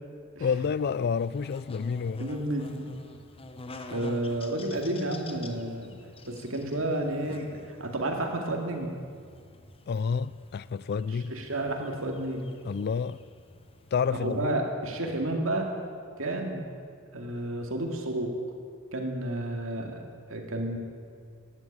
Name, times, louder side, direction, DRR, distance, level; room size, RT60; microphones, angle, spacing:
voice 1, 0.4-2.3 9.9-11.3 12.6-13.2 13.9-14.7, left 6 dB, 50° left, 0.3 m, -29 dB
Buzz, 0.5-14.5, left 2 dB, 25° left, 0.9 m, -49 dB
voice 2, 2.2-2.9 3.9-5.9 6.2-9.0 11.3-12.5 14.1-15.7 16.2-16.7 17.1-18.4 18.9-20.0 20.3-20.8, right 1 dB, 70° right, 2.3 m, -31 dB
14.5 x 11.0 x 8.6 m
head